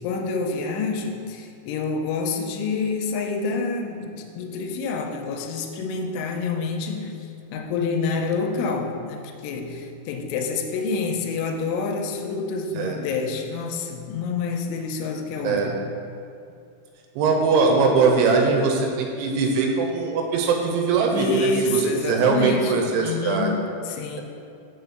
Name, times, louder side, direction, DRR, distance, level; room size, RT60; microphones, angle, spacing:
voice 1, 0.0-15.8 21.1-24.2, left 3 dB, 85° left, 4 dB, 3.1 m, -27 dB
voice 2, 17.2-21.8 22.1-23.5, right 4 dB, 80° right, 2 dB, 3.1 m, -21 dB
7.0 x 5.8 x 6.4 m, 2.5 s
omnidirectional pair, 5.5 m